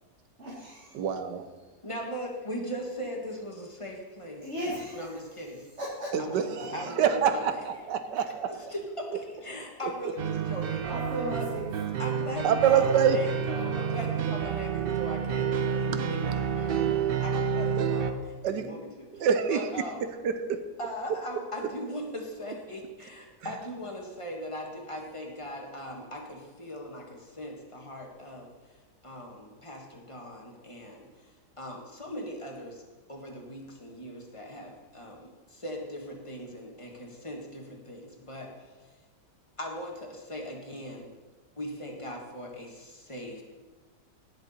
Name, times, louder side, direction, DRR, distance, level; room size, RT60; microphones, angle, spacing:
voice 1, 0.4-0.9 4.4-5.2 5.8-6.1 10.9-11.7 13.8-13.9, equal, 40° right, -4 dB, 2.2 m, -36 dB
voice 2, 0.9-1.4 6.1-8.5 12.4-13.2 17.8-17.9 18.4-18.7 19.1-19.8 20.2-20.6 21.6-21.7 23.4-23.6, right 8 dB, 85° right, 9 dB, 1.4 m, -26 dB
voice 3, 1.8-5.6 6.2-6.4 6.7-7.4 8.7-11.0 11.3-11.4 12.0-18.2 18.5-20.0 20.8-28.5 29.0-31.1 31.6-32.8 33.1-38.5 39.6-41.0 41.6-43.4, equal, 20° left, 0 dB, 1.7 m, -39 dB
sound 1, 10.2-18.1, right 7 dB, 65° right, 0.5 m, -29 dB
17.5 x 6.8 x 4.3 m, 1.3 s
omnidirectional pair, 1.8 m